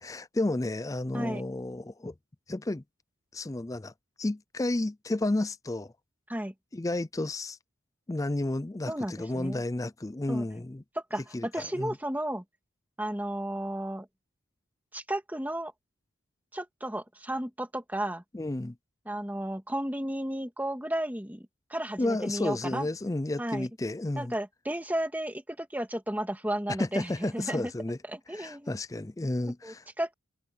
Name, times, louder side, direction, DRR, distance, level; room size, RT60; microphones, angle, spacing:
voice 1, 0.0-2.1 2.5-2.8 3.3-3.9 4.2-5.9 6.7-7.6 8.1-10.8 11.3-12.0 18.3-18.7 22.0-24.3 26.8-28.0 28.3-29.8, left 2 dB, 15° left, 0.4 m, -32 dB
voice 2, 8.9-9.6 10.3-10.5 11.1-12.4 13.0-14.1 14.9-15.7 16.5-18.2 19.1-21.4 21.7-22.9 23.4-23.7 24.2-27.7 28.1-28.7 29.6-30.1, right 1 dB, 10° right, 2.3 m, -33 dB
head